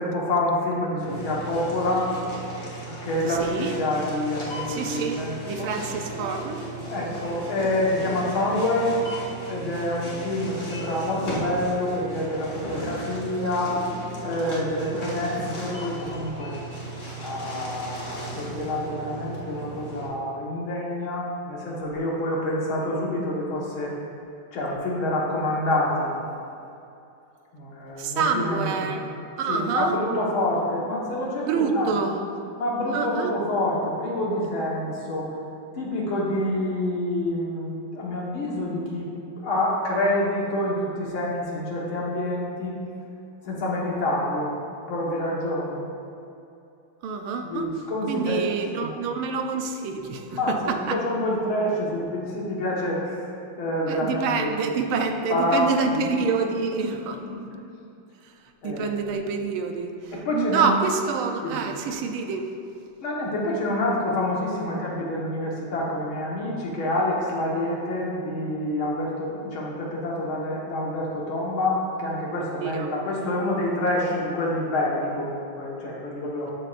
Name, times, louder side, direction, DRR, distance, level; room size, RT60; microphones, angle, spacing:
voice 1, 0.0-2.1 3.0-5.7 6.9-9.0 9.5-13.8 14.2-16.6 17.2-23.9 24.5-26.2 27.5-29.0 29.5-32.1 32.6-35.3 35.7-39.1 39.4-42.8 43.4-44.5 44.9-45.8 47.4-48.4 48.8-49.0 50.3-54.9 55.3-56.1 57.2-57.6 58.6-58.9 60.3-60.8 61.4-61.7 63.0-76.5, left 1 dB, 90° left, -4 dB, 2.4 m, -27 dB
sound 1, 1.0-20.1, right 1 dB, 40° left, 2.0 m, -36 dB
voice 2, 3.3-3.7 4.7-5.2 5.5-6.6 28.0-29.1 29.4-30.0 31.5-32.1 32.9-33.3 47.0-47.7 48.1-51.0 53.9-57.2 58.6-62.4 72.3-72.9 76.5-76.6, right 5 dB, 85° right, 5 dB, 1.6 m, -27 dB
13.5 x 6.7 x 2.6 m, 2.7 s
omnidirectional pair, 2.2 m